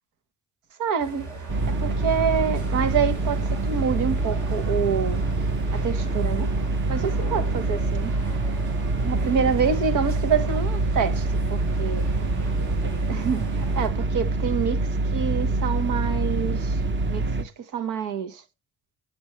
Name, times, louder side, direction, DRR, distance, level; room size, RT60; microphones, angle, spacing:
voice 1, 0.8-1.3 1.7-5.2 5.7-8.1 9.0-12.4 13.1-16.8 17.1-18.4, right 6 dB, 85° right, 1.3 m, -27 dB
sound 1, 1.0-13.9, right 2 dB, 70° right, 4.4 m, -39 dB
sound 2, 1.5-17.4, right 2 dB, 40° right, 1.0 m, -25 dB
7.9 x 7.2 x 3.1 m
cardioid pair, 90°, 30 cm